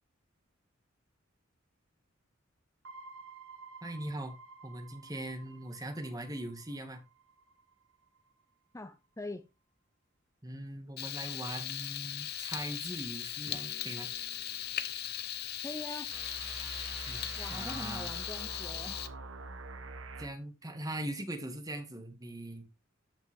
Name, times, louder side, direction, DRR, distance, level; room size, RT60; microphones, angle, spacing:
sound 1, 2.8-7.7 8.1-8.2 16.1-20.3, right 3 dB, 75° right, 1.3 m, -47 dB
voice 1, 3.8-4.3 4.6-7.0 10.4-14.1 17.1-18.1 20.2-22.6, right 1 dB, 20° right, 1.8 m, -41 dB
voice 2, 8.7-9.4 15.6-16.2 17.3-19.0, left 2 dB, 15° left, 0.6 m, -43 dB
Frying (food), 11.0-19.1, left 11 dB, 50° left, 0.8 m, -38 dB
sound 2, 13.4-15.8, equal, 70° left, 4.2 m, -57 dB
13.5 x 5.9 x 3.5 m
head